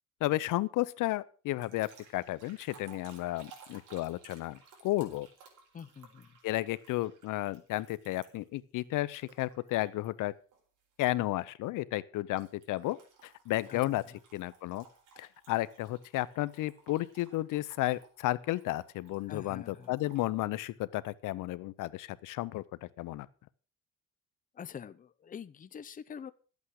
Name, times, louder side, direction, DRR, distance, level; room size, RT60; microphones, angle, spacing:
voice 1, 0.2-5.3 6.4-10.3 11.0-13.0 13.2-14.0 14.3-14.8 15.2-23.3, left 17 dB, 75° left, 18 dB, 0.8 m, -33 dB
sound 1, 1.6-8.6 9.2-10.1 10.5-10.8 12.4-20.3, right 6 dB, 70° right, 4.5 m, -59 dB
voice 2, 5.7-6.4 13.7-13.8 19.3-20.0 24.5-26.3, left 7 dB, 25° left, 13 dB, 0.7 m, -45 dB
13.0 x 8.5 x 6.4 m, 0.38 s
cardioid pair, 125°, 32 cm